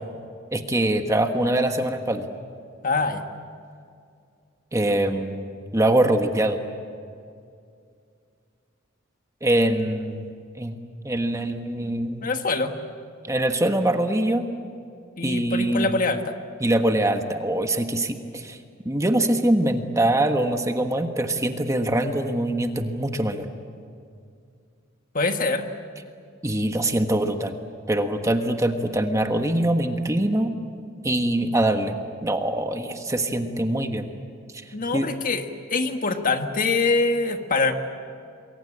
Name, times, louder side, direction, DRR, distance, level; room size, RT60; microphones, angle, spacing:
voice 1, 0.5-2.2 4.7-5.5 5.7-6.6 9.4-10.3 10.6-10.7 11.0-12.3 13.2-14.5 15.2-15.9 16.6-18.6 18.8-23.5 26.4-27.5 27.9-30.5 31.0-31.9 32.2-34.1 34.9-35.1, right 1 dB, 15° right, 6 dB, 1.4 m, -23 dB
voice 2, 2.8-3.2 12.2-12.8 15.2-16.4 25.1-25.7 34.7-37.7, left 3 dB, 40° left, 6 dB, 1.5 m, -24 dB
27.5 x 22.0 x 8.8 m, 2.3 s
head